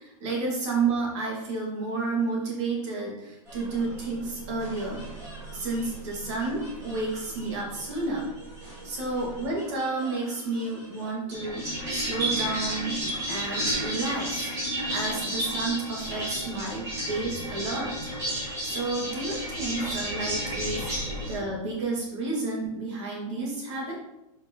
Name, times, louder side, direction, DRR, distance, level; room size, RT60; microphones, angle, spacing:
voice 1, 0.0-5.0 5.5-8.3 8.8-14.5 14.9-17.9 18.6-20.9 21.3-23.9, right 3 dB, 50° right, -2 dB, 2.0 m, -31 dB
sound 1, 3.5-21.3, right 1 dB, 15° right, 2.1 m, -33 dB
6.9 x 5.2 x 2.9 m, 0.89 s
supercardioid pair, 165°, 19 cm